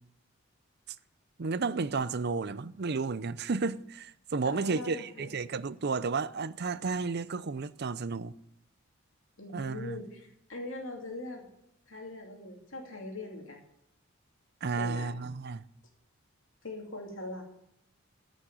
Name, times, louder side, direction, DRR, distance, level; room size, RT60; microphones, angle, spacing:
voice 1, 1.4-8.3 9.5-10.0 14.6-15.7, right 4 dB, 50° right, 0.6 m, -32 dB
voice 2, 4.4-5.3 9.4-11.5 11.9-13.6 14.8-15.1 16.6-17.4, left 2 dB, 65° left, 2.7 m, -41 dB
14.5 x 6.4 x 7.8 m
head